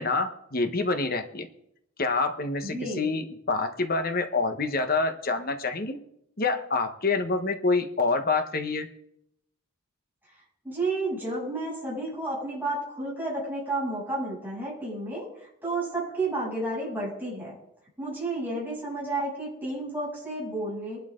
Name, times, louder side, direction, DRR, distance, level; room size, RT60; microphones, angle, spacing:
voice 1, 0.0-1.5 2.0-6.0 6.4-8.9, left 3 dB, 45° left, 7 dB, 1.2 m, -27 dB
voice 2, 2.6-3.1 10.6-17.5 18.0-21.0, right 2 dB, 10° right, -7 dB, 8.0 m, -31 dB
23.0 x 11.5 x 3.9 m, 0.78 s
head